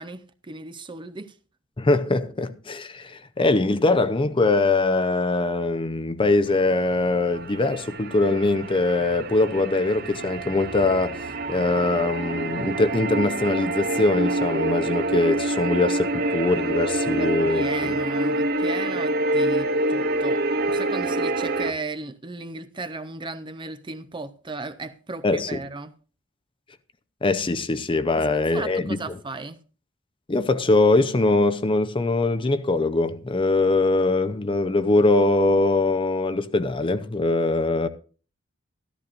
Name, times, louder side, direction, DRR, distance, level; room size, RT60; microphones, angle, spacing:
voice 1, 0.0-1.4 17.2-20.4 20.7-25.9 28.1-29.6, right 3 dB, 25° right, 0.6 m, -35 dB
voice 2, 1.8-11.2 11.5-17.9 25.2-25.5 27.2-29.0 30.3-37.9, left 2 dB, 25° left, 0.6 m, -22 dB
sound 1, 6.5-21.7, right 2 dB, 55° right, 0.9 m, -27 dB
13.5 x 13.0 x 2.5 m
head